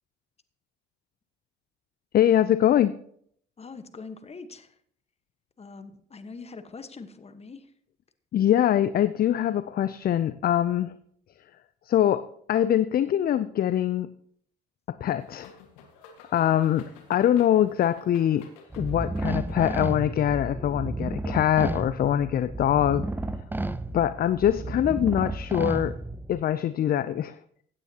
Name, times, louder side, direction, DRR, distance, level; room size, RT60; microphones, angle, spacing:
voice 1, 2.1-3.0 8.3-10.9 11.9-14.1 14.9-15.5 16.3-18.5 18.8-23.1 23.9-26.0 26.3-27.4, left 11 dB, 45° left, 14 dB, 0.5 m, -23 dB
voice 2, 3.6-4.7 5.6-7.7, left 4 dB, 30° left, 10 dB, 1.3 m, -43 dB
sound 1, 15.2-20.2, left 5 dB, 85° left, 1.7 m, -51 dB
sound 2, 18.7-26.4, right 2 dB, 10° right, 0.7 m, -32 dB
16.0 x 9.0 x 2.9 m, 0.64 s
hypercardioid pair, 60°, 21 cm